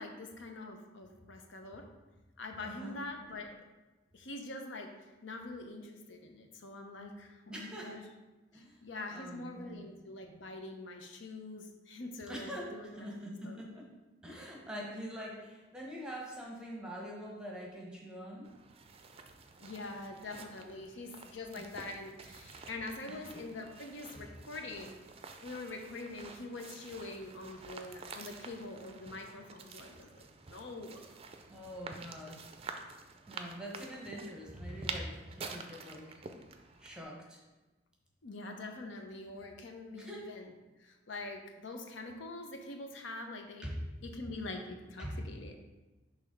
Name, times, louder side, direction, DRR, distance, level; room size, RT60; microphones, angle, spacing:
voice 1, 0.0-1.9 2.4-3.5 4.1-8.0 8.5-13.1 13.4-13.6 19.6-25.0 25.4-31.0 38.2-40.5 40.8-43.7 44.0-45.6, left 2 dB, 70° left, 4 dB, 0.7 m, -44 dB
voice 2, 2.6-3.0 7.5-8.0 8.5-8.8 9.1-9.9 12.3-13.9 14.2-18.5 23.1-23.2 31.5-32.4 33.3-36.1 36.8-37.4 39.9-40.3 43.6-43.8 45.0-45.1, equal, 5° right, -2 dB, 1.0 m, -44 dB
sound 1, 18.4-37.0, right 4 dB, 30° right, 0.4 m, -49 dB
6.1 x 3.2 x 5.2 m, 1.1 s
head